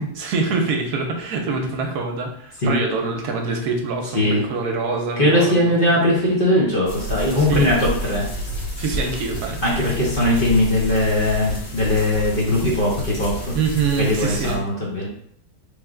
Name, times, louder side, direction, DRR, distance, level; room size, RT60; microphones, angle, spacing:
voice 1, 0.0-5.9 7.4-7.7 8.8-9.6 13.5-14.6, right 4 dB, 70° right, 3 dB, 1.1 m, -25 dB
voice 2, 4.1-4.4 5.2-7.8 8.1-8.3 9.6-13.5 14.0-15.1, left 1 dB, 40° left, -5 dB, 0.9 m, -19 dB
sound 1, 6.9-14.6, equal, 70° left, 1.8 m, -30 dB
3.4 x 3.2 x 3.7 m, 0.66 s
omnidirectional pair, 1.8 m